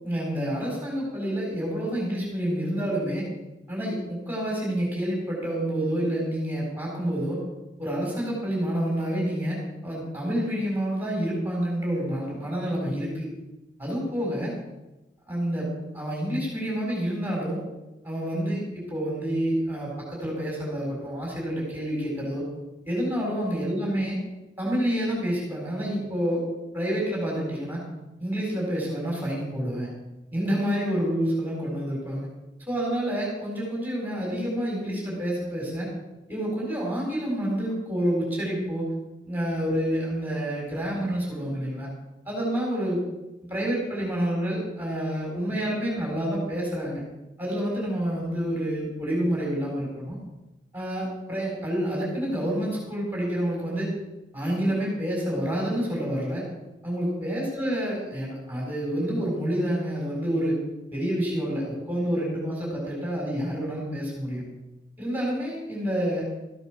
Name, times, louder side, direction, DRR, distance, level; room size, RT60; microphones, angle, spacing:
voice 1, 0.0-3.2 3.7-7.4 7.8-13.3 13.8-14.5 15.3-15.7 15.9-17.6 18.0-22.4 22.8-24.2 24.6-26.5 26.7-27.8 28.2-29.9 30.3-32.3 32.7-35.9 36.3-38.9 39.3-41.9 42.3-43.0 43.5-47.0 47.4-50.2 50.7-53.9 54.3-56.5 56.8-60.5 60.9-64.4 65.0-66.3, equal, 10° right, -4 dB, 4.3 m, -28 dB
14.0 x 9.2 x 6.1 m, 1.0 s
head